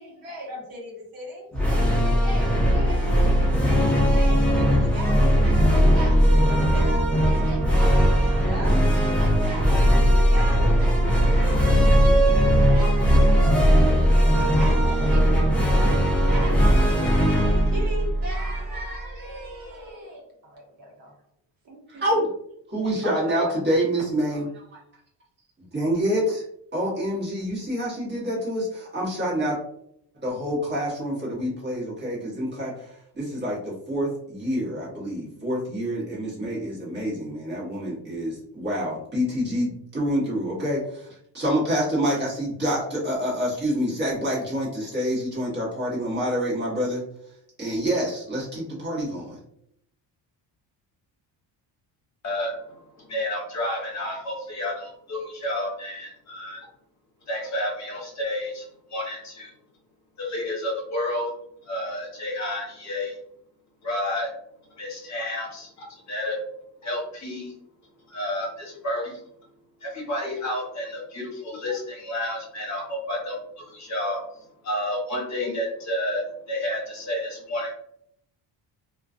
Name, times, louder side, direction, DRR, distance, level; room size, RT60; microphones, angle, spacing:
voice 1, 0.0-21.1 21.6-22.2 23.0-23.6, right 1 dB, 55° right, -3 dB, 0.9 m, -38 dB
sound 1, 1.5-19.0, equal, 5° left, 0.5 m, -19 dB
voice 2, 21.9-22.3 22.7-24.8 25.6-26.4 26.7-29.6 30.2-47.0 47.6-49.4, equal, 25° right, -6 dB, 1.1 m, -27 dB
voice 3, 52.2-52.6 53.0-56.7 57.3-59.5 60.2-61.3 61.6-63.2 63.8-64.3 64.8-66.4 66.8-67.5 68.1-69.2 69.8-74.2 74.6-77.7, left 1 dB, 40° left, -3 dB, 1.0 m, -30 dB
2.3 x 2.3 x 2.4 m, 0.72 s
cardioid pair, 140°, 42 cm